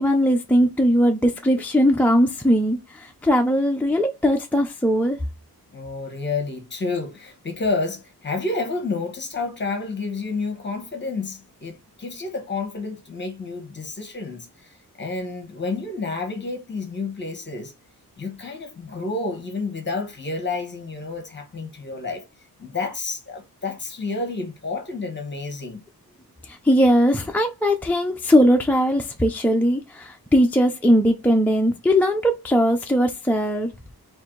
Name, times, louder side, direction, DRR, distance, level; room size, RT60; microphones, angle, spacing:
voice 1, 0.0-5.2 26.4-33.7, equal, 5° left, 0.3 m, -19 dB
voice 2, 5.7-17.7 18.2-22.2 22.6-25.8, left 3 dB, 30° left, 1.1 m, -30 dB
4.5 x 2.6 x 3.7 m
wide cardioid pair, 170°, 38 cm